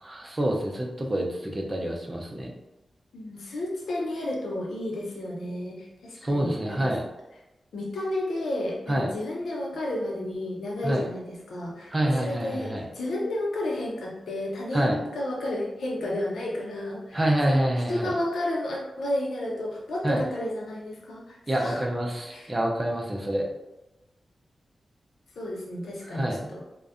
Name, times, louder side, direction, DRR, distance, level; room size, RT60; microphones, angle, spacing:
voice 1, 0.0-2.5 6.2-7.0 8.9-9.1 10.8-11.0 11.9-12.8 14.7-15.0 17.1-18.1 20.0-20.2 21.5-23.5 26.1-26.5, right 1 dB, 25° right, -1 dB, 0.5 m, -27 dB
voice 2, 3.1-6.9 7.7-17.6 17.9-21.8 22.3-22.5 25.4-26.7, left 1 dB, 90° left, -3 dB, 0.6 m, -32 dB
2.5 x 2.2 x 2.4 m, 0.98 s
wide cardioid pair, 80°, 0 cm